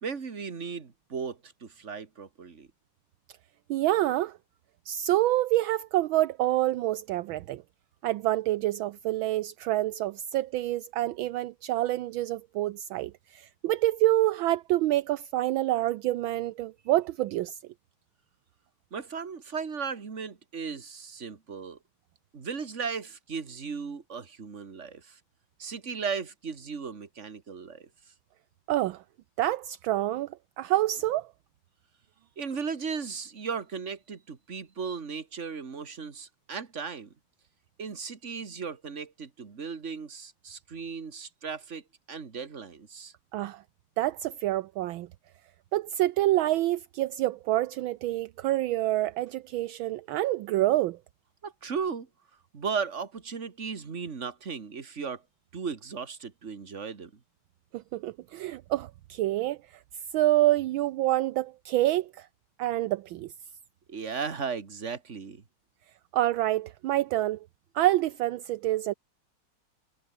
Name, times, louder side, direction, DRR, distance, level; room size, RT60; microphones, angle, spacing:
voice 1, 0.0-2.7 18.9-21.8 22.3-25.2 25.6-27.9 32.4-37.1 37.8-43.1 51.4-52.1 52.5-55.2 55.5-57.1 63.9-65.4, right 5 dB, 35° right, 2.2 m, -36 dB
voice 2, 3.7-4.4 4.9-7.6 8.0-17.6 28.7-29.0 29.4-31.3 43.3-43.6 44.0-45.1 45.7-51.0 57.7-59.6 60.1-62.3 62.6-63.3 66.1-67.4 67.7-68.9, right 15 dB, 75° right, 1.4 m, -27 dB
omnidirectional pair, 2.3 m